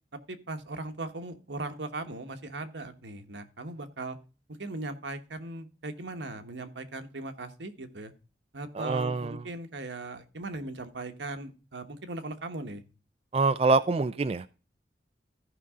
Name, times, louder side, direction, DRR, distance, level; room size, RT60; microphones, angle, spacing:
voice 1, 0.3-4.2 4.5-8.1 8.5-12.8, right 2 dB, 90° right, 8 dB, 1.2 m, -38 dB
voice 2, 8.8-9.4 13.3-14.5, right 3 dB, 35° right, 12 dB, 0.3 m, -25 dB
14.5 x 5.3 x 3.6 m, 0.34 s
head